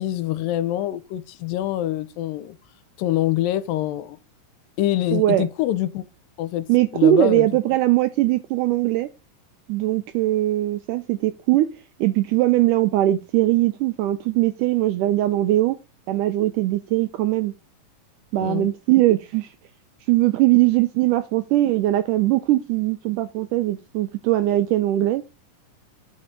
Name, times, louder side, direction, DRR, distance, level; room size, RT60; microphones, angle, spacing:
voice 1, 0.0-2.6 3.0-4.2 4.8-6.0 6.4-6.7 6.9-7.5 18.3-18.7, left 13 dB, 80° left, 2.3 m, -25 dB
voice 2, 5.1-5.5 6.7-9.1 9.7-11.7 12.0-15.8 16.1-17.5 18.3-19.5 20.1-25.2, right 15 dB, 85° right, 1.9 m, -20 dB
9.5 x 4.3 x 4.9 m
omnidirectional pair, 4.1 m